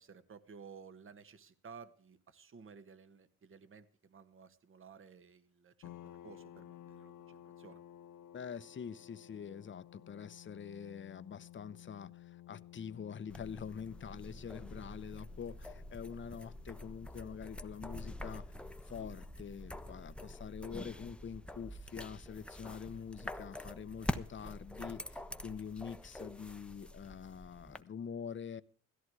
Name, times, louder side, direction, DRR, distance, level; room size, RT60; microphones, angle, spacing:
voice 1, 0.0-7.8, right 6 dB, 45° right, 13 dB, 1.5 m, -55 dB
sound 1, 5.8-19.1, left 12 dB, 80° left, 0.8 m, -56 dB
voice 2, 8.3-18.4 18.9-28.6, left 7 dB, 40° left, 14 dB, 0.9 m, -45 dB
sound 2, 13.3-27.8, left 1 dB, 5° left, 0.9 m, -46 dB
16.5 x 14.0 x 4.8 m, 0.43 s
cardioid pair, 90°, 30 cm